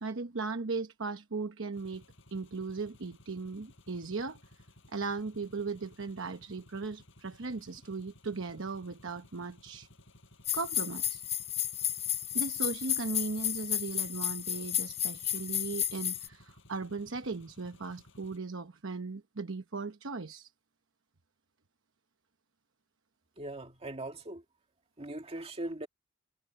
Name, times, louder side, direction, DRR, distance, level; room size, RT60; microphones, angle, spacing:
voice 1, 0.0-2.0 2.3-4.4 4.9-9.9 10.5-11.2 12.3-20.5, right 4 dB, 70° right, 1.0 m, -37 dB
sound 1, 1.7-18.4, left 1 dB, 65° left, 7.7 m, -58 dB
sound 2, 10.4-16.3, left 11 dB, 30° left, 0.8 m, -32 dB
voice 2, 23.4-24.4 25.0-25.9, right 1 dB, 30° right, 2.2 m, -40 dB
head